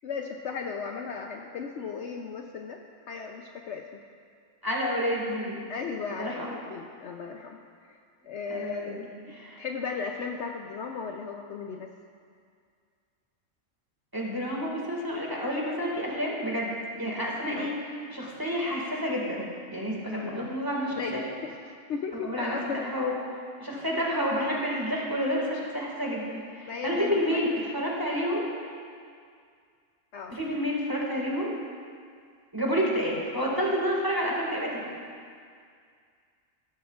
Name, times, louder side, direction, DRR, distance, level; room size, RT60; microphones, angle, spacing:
voice 1, 0.0-2.8 3.1-3.8 5.7-7.6 7.9-8.0 8.2-9.1 9.6-11.9 17.6-17.7 20.1-20.5 20.9-22.8 26.7-27.4 30.1-30.4, left 5 dB, 65° left, 2 dB, 0.8 m, -36 dB
voice 2, 4.6-5.6 6.1-6.5 8.5-9.6 14.1-16.7 17.0-17.7 18.1-21.2 22.1-22.6 22.9-23.1 23.6-27.5 27.7-28.5 30.3-31.5 32.5-34.8, equal, 15° right, -4 dB, 1.9 m, -29 dB
14.0 x 13.0 x 2.4 m, 2.2 s
omnidirectional pair, 1.4 m